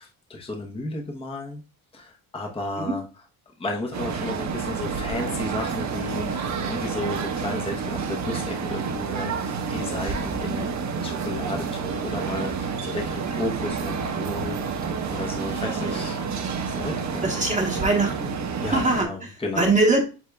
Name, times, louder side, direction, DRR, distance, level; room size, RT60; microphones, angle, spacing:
voice 1, 0.0-1.6 1.9-3.0 3.6-16.2 16.7-17.3 18.6-19.7, left 2 dB, 15° left, 1 dB, 0.9 m, -33 dB
sound 1, 3.9-19.1, right 5 dB, 50° right, 1.0 m, -29 dB
voice 2, 17.2-18.3 18.7-20.0, right 2 dB, 20° right, 0 dB, 1.2 m, -23 dB
8.2 x 2.8 x 2.2 m, 0.32 s
cardioid pair, 110°, 37 cm